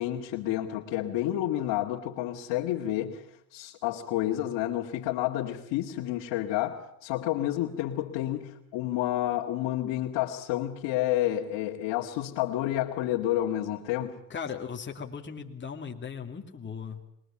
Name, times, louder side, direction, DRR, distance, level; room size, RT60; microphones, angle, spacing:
voice 1, 0.0-3.3 3.5-14.2, left 13 dB, 85° left, -1 dB, 2.2 m, -30 dB
voice 2, 14.3-17.0, left 6 dB, 25° left, 2 dB, 2.6 m, -38 dB
27.0 x 21.5 x 8.7 m, 0.75 s
cardioid pair, 110°, 43 cm